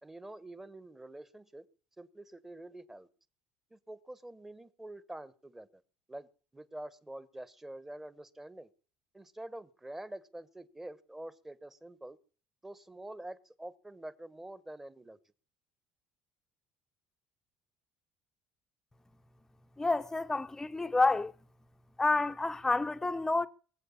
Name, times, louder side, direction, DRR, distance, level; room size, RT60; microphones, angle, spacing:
voice 1, 0.0-1.6 2.0-3.1 3.7-5.8 6.1-6.3 6.5-8.7 9.1-12.2 12.6-15.2, right 1 dB, 10° right, 1.3 m, -46 dB
voice 2, 19.8-21.3 22.0-23.5, left 3 dB, 10° left, 0.8 m, -29 dB
22.5 x 8.0 x 7.3 m
cardioid pair, 110°, 4 cm